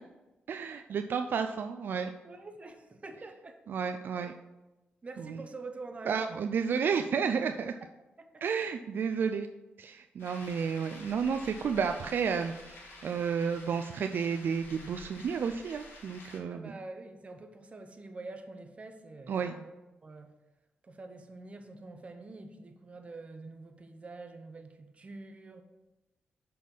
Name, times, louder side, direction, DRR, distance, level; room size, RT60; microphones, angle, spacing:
voice 1, 0.5-2.1 3.7-4.3 5.2-5.4 6.1-7.7 8.4-9.5 9.8-12.8 13.0-16.7 19.3-19.5, right 6 dB, 65° right, 7 dB, 0.3 m, -31 dB
voice 2, 2.2-3.6 4.2-4.3 5.0-6.3 8.2-8.4 16.5-19.7 20.0-20.3 20.8-25.6, right 3 dB, 35° right, 6 dB, 0.8 m, -46 dB
sound 1, 10.2-16.4, left 2 dB, 80° left, 1.6 m, -50 dB
6.2 x 4.2 x 5.4 m, 1.0 s
cardioid pair, 95°, 4 cm